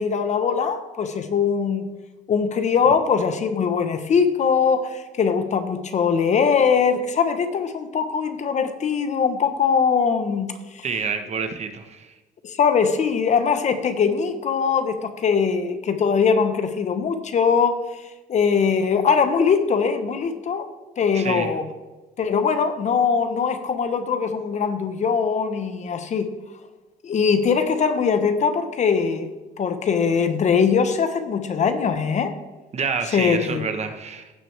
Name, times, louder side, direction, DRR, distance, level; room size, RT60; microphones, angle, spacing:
voice 1, 0.0-1.9 2.3-10.8 12.4-17.8 18.3-20.7 21.0-21.7 22.2-26.3 27.0-29.3 29.6-32.3 33.1-33.6, left 6 dB, 45° left, 9 dB, 1.1 m, -21 dB
voice 2, 10.8-12.1 21.1-21.5 32.7-34.3, right 5 dB, 40° right, 7 dB, 1.2 m, -28 dB
16.5 x 6.2 x 3.4 m, 1.2 s
cardioid pair, 110°, 17 cm